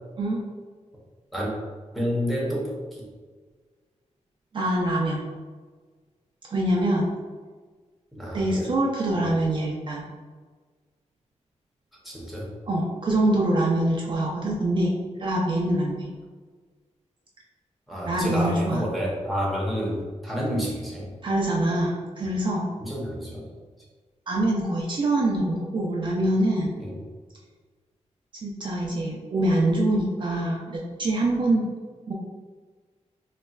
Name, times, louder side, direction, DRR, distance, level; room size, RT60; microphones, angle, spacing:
voice 1, 1.9-3.1 8.1-8.7 9.1-9.3 12.0-12.5 17.9-21.1 22.8-23.5 26.8-27.0, equal, ahead, -5 dB, 0.7 m, -29 dB
voice 2, 4.5-5.2 6.5-7.1 8.3-10.0 12.7-14.9 15.2-16.1 18.1-18.9 21.2-22.7 24.3-26.7 28.4-31.6 32.1-32.2, right 1 dB, 40° right, -3 dB, 0.4 m, -24 dB
4.0 x 2.2 x 2.3 m, 1.4 s
wide cardioid pair, 155°, 12 cm